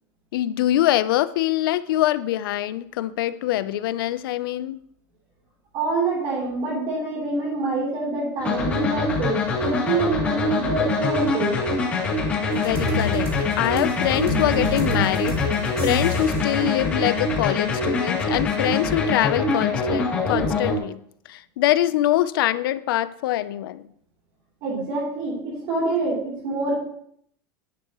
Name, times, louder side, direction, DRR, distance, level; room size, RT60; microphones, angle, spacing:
voice 1, 0.3-4.8 12.5-13.3 13.6-15.4 15.8-21.0 21.3-23.9, left 14 dB, 90° left, 15 dB, 0.6 m, -24 dB
voice 2, 5.7-11.7 24.6-26.7, right 3 dB, 40° right, -5 dB, 3.4 m, -26 dB
sound 1, 8.4-20.8, left 3 dB, 10° left, 2.8 m, -24 dB
sound 2, 12.5-16.6, equal, 25° right, 2.6 m, -29 dB
11.0 x 10.5 x 3.1 m, 0.68 s
supercardioid pair, 170°, 11 cm